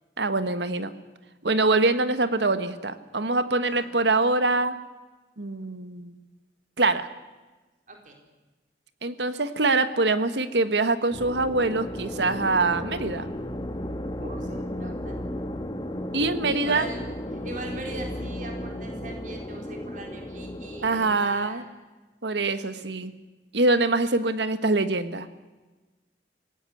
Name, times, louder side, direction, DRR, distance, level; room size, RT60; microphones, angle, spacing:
voice 1, 0.2-0.9 1.4-4.7 5.4-6.2 6.8-7.1 9.0-13.3 16.1-16.9 20.8-21.6 22.2-23.1 23.5-25.3, right 3 dB, 80° right, 12 dB, 1.5 m, -24 dB
sound 1, 11.1-21.2, left 1 dB, 25° left, 1.5 m, -34 dB
voice 2, 14.2-15.2 16.4-17.0 17.4-21.7 22.7-23.0, right 2 dB, 45° right, 2 dB, 4.2 m, -40 dB
25.5 x 17.5 x 7.9 m, 1.2 s
head